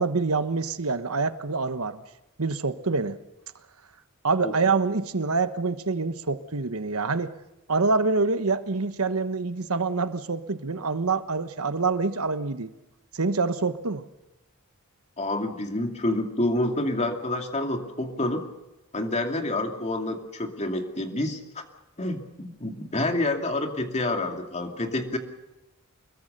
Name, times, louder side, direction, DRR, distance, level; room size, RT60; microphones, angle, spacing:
voice 1, 0.0-2.0 2.4-3.2 4.2-7.3 7.7-12.7 13.1-14.1, right 4 dB, 85° right, 11 dB, 1.2 m, -26 dB
voice 2, 15.2-18.4 18.9-21.6 22.0-25.2, left 1 dB, 30° left, 4 dB, 2.6 m, -28 dB
25.0 x 22.0 x 6.7 m, 0.95 s
head